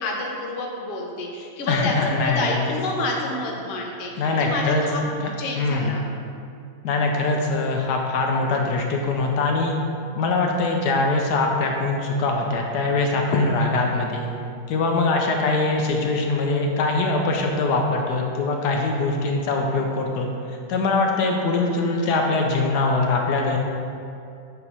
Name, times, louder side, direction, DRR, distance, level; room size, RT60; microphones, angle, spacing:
voice 1, 0.0-5.0 5.4-6.0, left 2 dB, 55° left, -1 dB, 0.6 m, -28 dB
voice 2, 1.7-2.6 4.2-4.8 5.2-5.9 6.8-9.7 10.2-14.3 14.7-20.3 20.7-23.6, left 3 dB, 70° left, 1 dB, 1.1 m, -22 dB
7.8 x 2.9 x 5.4 m, 2.5 s
omnidirectional pair, 2.0 m